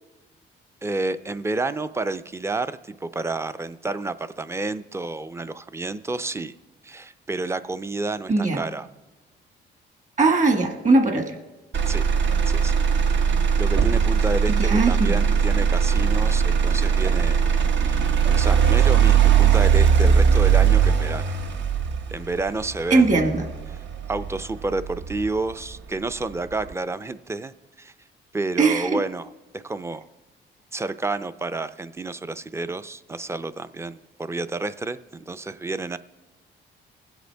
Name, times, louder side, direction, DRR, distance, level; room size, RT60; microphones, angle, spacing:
voice 1, 0.8-6.5 6.8-8.9 11.9-12.0 12.5-12.8 13.6-17.4 17.8-21.3 22.1-23.1 24.1-27.5 27.8-27.9 28.3-30.0 30.7-36.0, right 3 dB, 15° right, 13 dB, 0.4 m, -30 dB
voice 2, 8.3-8.6 10.2-11.4 14.6-15.2 22.9-23.4 28.6-29.0, right 3 dB, 40° right, 5 dB, 1.5 m, -20 dB
Motor vehicle (road), 11.7-25.7 26.2-26.7, right 7 dB, 65° right, 0.9 m, -20 dB
21.0 x 8.0 x 3.4 m, 1.2 s
cardioid pair, 90°, 20 cm